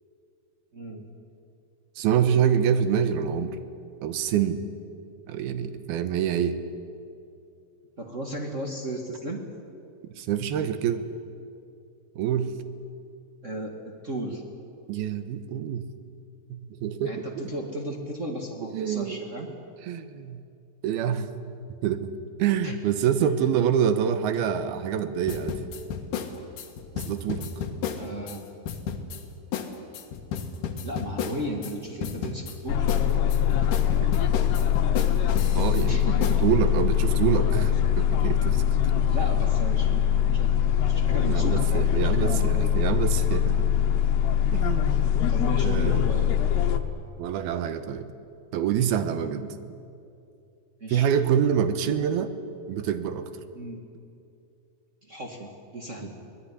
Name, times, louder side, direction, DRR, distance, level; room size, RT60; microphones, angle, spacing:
voice 1, 0.7-1.0 8.0-9.4 13.4-14.4 17.0-19.5 22.6-22.7 23.2-23.3 27.9-28.4 30.8-32.9 35.9-36.4 39.1-40.3 40.9-42.7 45.3-46.3 49.3-49.5 50.8-51.1 53.5-53.8 55.0-56.1, right 1 dB, 45° right, 2 dB, 0.9 m, -35 dB
voice 2, 2.0-3.6 4.0-4.6 5.3-6.6 10.2-11.0 12.2-12.5 14.9-15.8 16.5-17.3 18.7-19.2 19.9-20.4 20.8-21.3 21.8-22.1 22.4-25.5 27.0-27.5 34.0-34.1 35.5-38.6 39.0-39.1 41.3-43.7 44.5-45.3 45.6-46.1 47.2-48.1 48.5-49.4 50.9-52.3 52.7-53.3, right 8 dB, 75° right, 11 dB, 2.9 m, -26 dB
sound 1, 25.3-28.4 28.7-29.2 29.5-29.7 29.9-31.7 32.0-32.6 32.9-35.9 36.2-36.4, left 7 dB, 60° left, 2.9 m, -32 dB
sound 2, 32.7-46.8, left 10 dB, 80° left, 3.1 m, -23 dB
24.0 x 18.0 x 9.9 m, 2.5 s
omnidirectional pair, 4.7 m